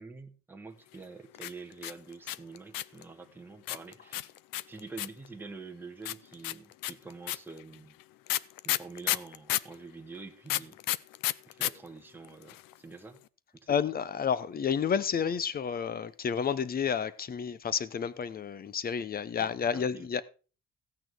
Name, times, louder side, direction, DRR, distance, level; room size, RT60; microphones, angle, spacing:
voice 1, 0.0-4.3 4.7-8.0 8.6-10.8 11.5-13.2 13.5-13.9 19.4-20.1, right 4 dB, 5° right, 1.1 m, -46 dB
sound 1, 1.3-3.0 3.7-5.3 6.0-9.7 10.5-11.7 12.0-12.1 12.2-12.7, left 15 dB, 90° left, 0.6 m, -31 dB
voice 2, 13.7-20.2, left 7 dB, 30° left, 0.7 m, -30 dB
15.5 x 8.7 x 4.5 m
cardioid pair, 180°, 33 cm